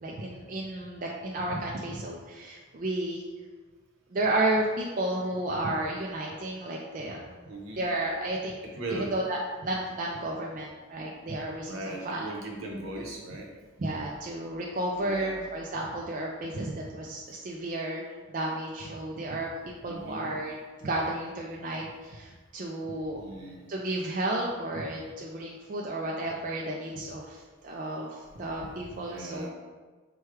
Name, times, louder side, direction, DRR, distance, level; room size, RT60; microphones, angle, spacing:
voice 1, 0.0-3.2 4.1-7.3 7.8-8.6 8.9-12.3 13.8-23.2 23.7-29.5, right 1 dB, 40° right, -2 dB, 0.4 m, -32 dB
voice 2, 7.5-7.8 8.6-9.1 11.7-13.5 15.0-15.4 19.8-20.3 23.2-23.7 28.3-28.4 29.1-29.5, right 2 dB, 70° right, 0 dB, 0.9 m, -38 dB
4.6 x 2.3 x 4.5 m, 1.4 s
head